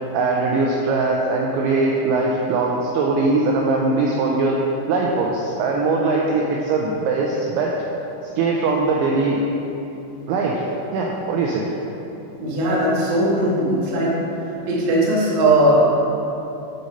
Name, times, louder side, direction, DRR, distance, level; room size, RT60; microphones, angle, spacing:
voice 1, 0.1-7.8 8.4-9.4 10.3-11.7, right 3 dB, 85° right, -1 dB, 2.7 m, -21 dB
voice 2, 12.4-14.1 14.7-15.8, right 1 dB, 60° right, -6 dB, 2.1 m, -18 dB
11.0 x 4.2 x 5.2 m, 3.0 s
omnidirectional pair, 5.9 m